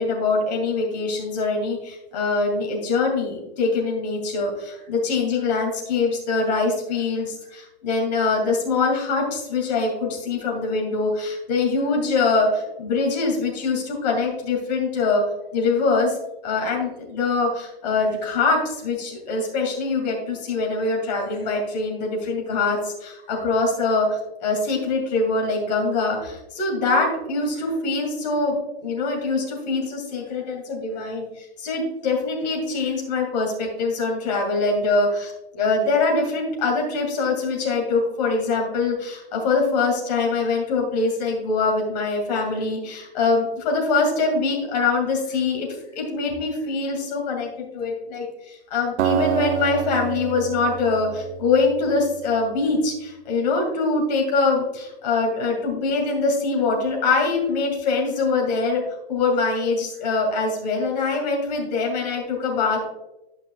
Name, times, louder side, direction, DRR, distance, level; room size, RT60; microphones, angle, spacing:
voice 1, 0.0-15.2 15.5-16.2 16.4-45.7 45.9-58.8 59.1-62.8, left 3 dB, 40° left, 0 dB, 2.4 m, -23 dB
Acoustic guitar, 49.0-52.2, right 10 dB, 90° right, 0.5 m, -27 dB
11.5 x 5.5 x 2.4 m, 0.98 s
hypercardioid pair, 170°, 33 cm